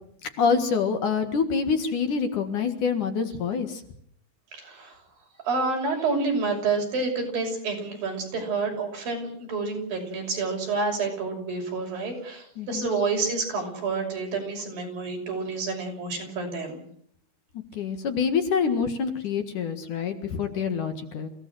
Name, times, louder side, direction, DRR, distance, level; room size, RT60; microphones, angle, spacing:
voice 1, 0.2-3.8 12.6-12.9 17.7-21.3, left 6 dB, 60° left, 7 dB, 3.0 m, -26 dB
voice 2, 4.5-5.0 5.4-16.8, right 4 dB, 65° right, 2 dB, 7.8 m, -29 dB
28.0 x 17.0 x 7.8 m, 0.67 s
omnidirectional pair, 4.4 m